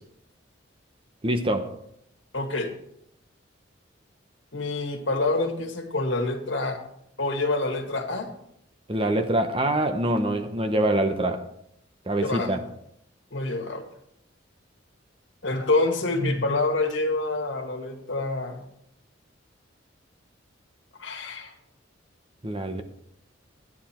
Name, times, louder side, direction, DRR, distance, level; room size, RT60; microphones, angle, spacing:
voice 1, 1.2-1.7 8.9-11.5 12.1-12.6 22.4-22.8, right 1 dB, 25° right, 0.9 m, -25 dB
voice 2, 2.3-2.7 4.5-6.8 7.2-8.3 12.2-12.6 13.3-13.8 15.4-18.6 21.0-21.5, left 2 dB, 70° left, 1.9 m, -27 dB
12.0 x 9.6 x 4.4 m
head